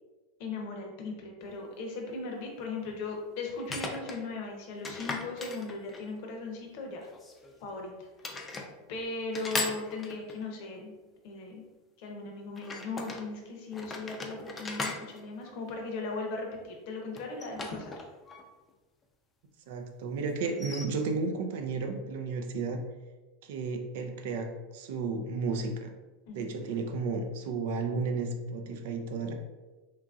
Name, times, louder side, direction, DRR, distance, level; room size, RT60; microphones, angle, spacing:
voice 1, 0.4-7.1 7.6-8.5 8.9-10.9 11.2-11.6 12.0-17.9 26.3-26.5, left 3 dB, 65° left, 2 dB, 0.7 m, -38 dB
sound 1, 1.5-1.6 3.6-4.2 4.8-6.2 7.1-7.8 8.2-8.7 9.3-10.4 12.6-13.2 13.7-16.1 17.2-18.4 18.7-18.8 20.4-20.9, left 3 dB, 20° left, 0.4 m, -38 dB
voice 2, 19.7-22.8 23.4-25.9 26.3-29.3, right 4 dB, 70° right, 5 dB, 0.4 m, -33 dB
2.9 x 2.5 x 2.3 m, 1.2 s
supercardioid pair, 125°, 0 cm